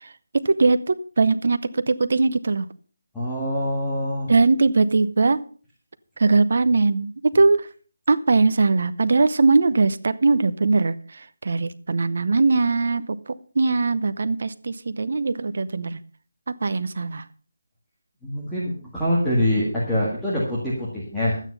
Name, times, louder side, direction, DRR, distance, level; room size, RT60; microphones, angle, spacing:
voice 1, 0.0-2.7 4.3-5.4 6.2-7.7 8.1-13.2 13.5-16.0 16.5-17.2, right 3 dB, 50° right, 15 dB, 0.8 m, -20 dB
voice 2, 3.1-4.3 18.2-21.4, left 1 dB, ahead, -10 dB, 1.9 m, -24 dB
12.5 x 9.2 x 5.4 m, 0.41 s
figure-of-eight pair, 175°, 0 cm